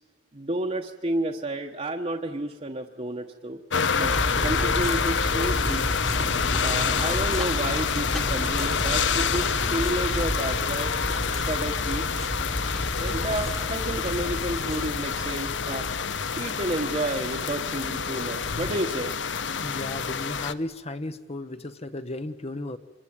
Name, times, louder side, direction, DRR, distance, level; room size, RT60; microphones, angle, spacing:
voice 1, 0.3-3.6 4.0-4.1 4.4-5.8 6.6-10.9 11.5-12.1 13.0-15.8 16.3-19.1, right 1 dB, 35° right, 2 dB, 1.2 m, -31 dB
sound 1, 3.7-20.5, left 6 dB, 70° left, 0.9 m, -27 dB
sound 2, 4.0-18.6, equal, ahead, 1.4 m, -32 dB
voice 2, 19.6-22.8, left 2 dB, 35° left, 10 dB, 0.9 m, -34 dB
26.5 x 23.0 x 8.8 m, 1.2 s
head